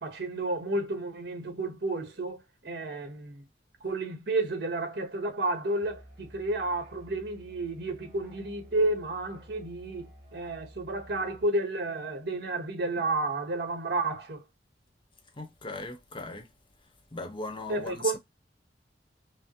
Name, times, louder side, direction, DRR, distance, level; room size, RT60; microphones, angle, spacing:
voice 1, 0.0-3.4 3.8-14.4 17.7-18.2, right 2 dB, 60° right, 1.4 m, -31 dB
Musical instrument, 5.8-11.5, equal, 35° right, 2.2 m, -53 dB
voice 2, 15.4-16.5 17.1-18.2, left 3 dB, 30° left, 0.8 m, -38 dB
5.5 x 2.0 x 2.8 m
head